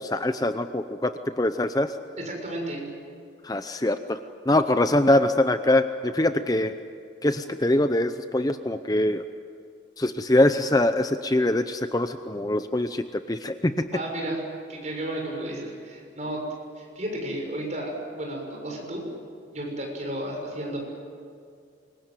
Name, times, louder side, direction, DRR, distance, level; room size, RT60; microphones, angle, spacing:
voice 1, 0.0-1.9 3.4-4.2 4.5-6.7 7.2-9.2 10.0-13.7, left 1 dB, 20° left, 9 dB, 0.7 m, -23 dB
voice 2, 2.2-2.8 13.9-14.4 14.7-16.4 16.8-19.0 19.5-20.8, right 1 dB, 40° right, 0 dB, 6.7 m, -33 dB
26.0 x 22.5 x 9.2 m, 2.3 s
head